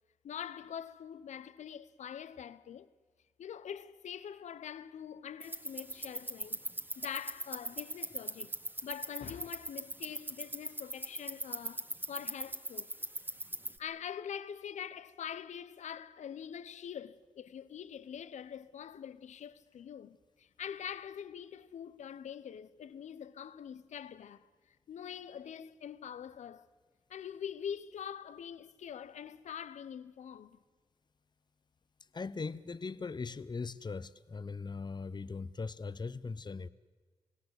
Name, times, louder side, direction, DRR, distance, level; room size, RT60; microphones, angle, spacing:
voice 1, 0.2-2.9 3.4-6.6 7.0-8.5 8.8-12.9 13.8-26.7 27.1-30.6, left 8 dB, 90° left, 0.8 m, -44 dB
sound 1, 5.4-13.8, right 1 dB, 15° right, 1.6 m, -41 dB
voice 2, 32.1-36.7, left 4 dB, 40° left, 0.8 m, -40 dB
27.0 x 17.5 x 8.1 m
cardioid pair, 50°, 12 cm